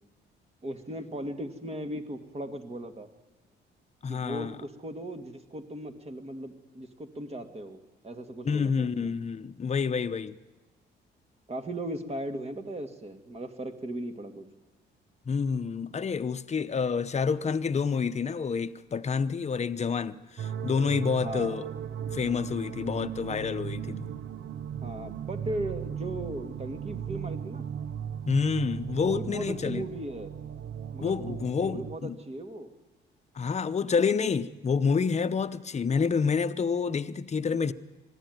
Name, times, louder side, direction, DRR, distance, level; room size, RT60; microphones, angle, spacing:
voice 1, 0.6-3.1 4.1-9.1 11.5-14.5 21.2-21.6 24.8-27.7 28.9-30.3 30.9-32.7, right 1 dB, 30° right, 2.1 m, -37 dB
voice 2, 4.0-4.6 8.4-10.4 15.3-21.7 22.1-24.1 28.3-29.8 31.0-32.2 33.3-37.7, left 5 dB, 35° left, 0.9 m, -28 dB
sound 1, 20.4-32.0, right 8 dB, 65° right, 0.7 m, -37 dB
21.5 x 15.0 x 9.4 m
cardioid pair, 90°, 20 cm